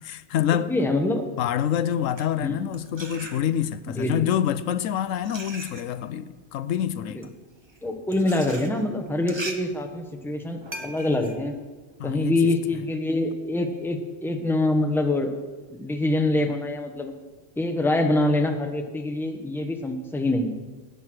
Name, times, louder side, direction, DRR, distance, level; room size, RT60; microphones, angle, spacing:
voice 1, 0.0-0.7 1.4-7.2 12.0-12.3, left 10 dB, 85° left, 1.0 m, -26 dB
voice 2, 0.7-1.2 2.4-2.5 3.9-4.3 7.1-7.3 7.8-11.5 12.0-15.3 15.7-17.1 17.6-20.6, left 2 dB, ahead, 1.0 m, -25 dB
sound 1, 2.0-3.9 4.6-12.5, right 2 dB, 25° right, 0.9 m, -41 dB
17.5 x 6.7 x 6.2 m
omnidirectional pair, 1.3 m